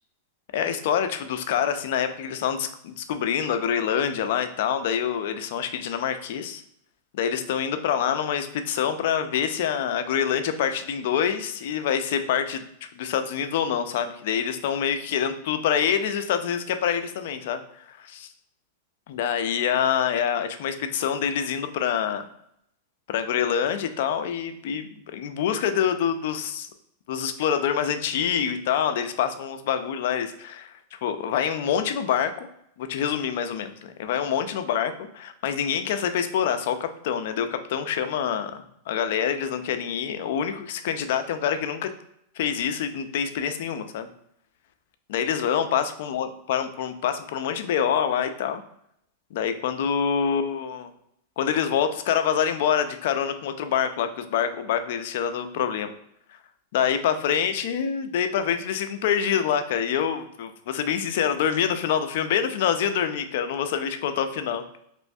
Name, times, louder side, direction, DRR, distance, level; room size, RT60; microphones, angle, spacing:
voice 1, 0.5-6.6 7.1-12.6 12.9-17.6 17.9-18.3 19.1-22.3 23.1-26.7 27.1-32.5 32.8-41.9 42.4-44.1 45.1-48.6 49.3-50.9 51.4-55.9 56.7-64.6, left 8 dB, 65° left, 9 dB, 0.4 m, -26 dB
3.1 x 3.0 x 2.6 m, 0.75 s
supercardioid pair, 140°, 0 cm